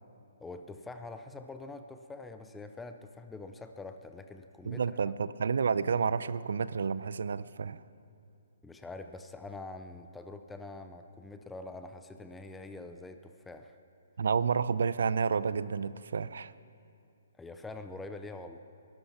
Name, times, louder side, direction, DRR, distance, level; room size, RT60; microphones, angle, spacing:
voice 1, 0.4-4.8 8.6-13.8 17.4-18.6, left 3 dB, 5° left, 7 dB, 0.3 m, -45 dB
voice 2, 4.7-7.8 14.2-16.5, right 6 dB, 60° right, 17 dB, 0.4 m, -30 dB
20.5 x 12.0 x 5.8 m, 2.6 s
hypercardioid pair, 180°, 0 cm